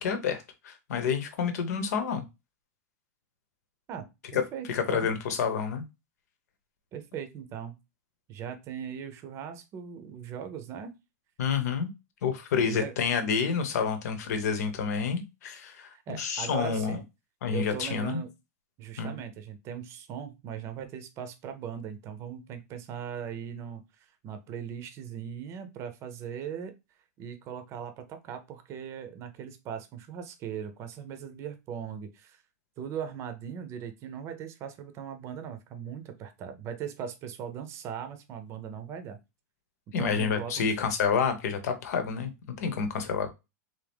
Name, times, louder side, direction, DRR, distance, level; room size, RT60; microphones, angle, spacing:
voice 1, 0.0-2.2 4.3-4.4 4.7-5.8 11.4-11.9 12.2-15.9 16.2-17.0 17.4-18.2 19.0-19.2 39.9-42.3 42.6-43.3, left 6 dB, 75° left, 7 dB, 1.0 m, -28 dB
voice 2, 4.5-5.1 6.9-7.8 8.3-10.9 12.6-12.9 15.9-17.0 17.5-18.3 18.8-23.8 24.2-26.7 27.2-32.4 32.8-39.2 40.0-40.7, right 8 dB, 35° right, 8 dB, 0.7 m, -39 dB
3.4 x 2.8 x 3.5 m, 0.24 s
supercardioid pair, 145°, 9 cm